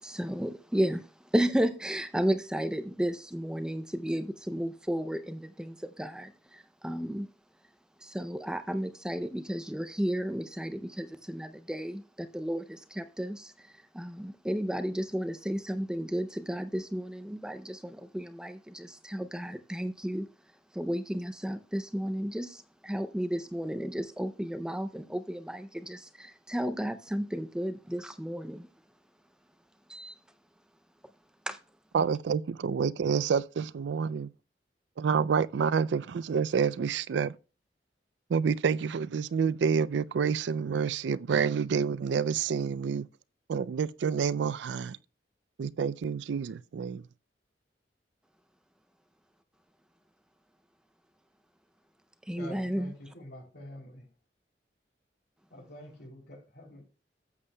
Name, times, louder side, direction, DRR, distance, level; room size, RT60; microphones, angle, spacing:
voice 1, 0.0-7.3 8.0-20.3 20.7-28.7 29.9-30.1 31.5-31.6 52.3-52.9, equal, 5° right, 0.4 m, -33 dB
voice 2, 31.9-34.3 35.0-37.4 38.3-43.1 43.5-45.0 45.6-47.0, right 6 dB, 80° right, 0.4 m, -28 dB
voice 3, 52.3-54.1 55.5-56.8, left 1 dB, 65° left, 3.1 m, -46 dB
13.0 x 8.1 x 2.2 m
head